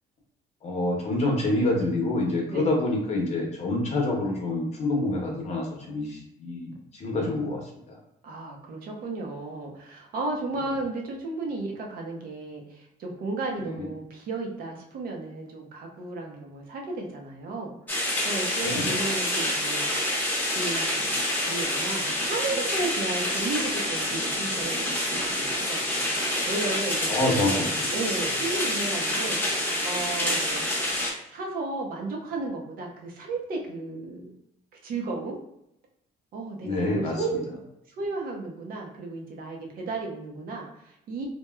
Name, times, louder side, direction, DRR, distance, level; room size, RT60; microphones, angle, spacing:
voice 1, 0.6-7.6 7.9-8.0 13.7-13.9 18.6-19.0 27.1-27.9 36.6-37.2, left 2 dB, 40° left, -1 dB, 0.8 m, -27 dB
voice 2, 8.2-19.9 20.5-27.6 27.9-30.7 31.3-34.4 34.8-35.4 36.3-37.4 38.0-41.3, right 3 dB, 60° right, 0 dB, 0.6 m, -34 dB
sound 1, 17.9-31.1, left 1 dB, 10° left, 0.9 m, -27 dB
3.0 x 2.2 x 2.2 m, 0.79 s
cardioid pair, 110°, 17 cm